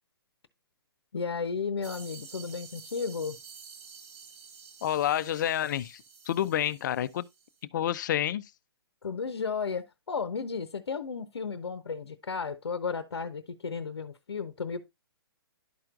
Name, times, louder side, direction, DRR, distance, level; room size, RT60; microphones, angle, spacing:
voice 1, 1.1-3.4 9.0-14.8, left 5 dB, 80° left, 0.8 m, -34 dB
sound 1, 1.8-7.6, right 6 dB, 35° right, 1.4 m, -50 dB
voice 2, 4.8-7.3 7.7-8.4, left 11 dB, 50° left, 0.5 m, -29 dB
12.0 x 4.4 x 2.4 m
hypercardioid pair, 130°, 13 cm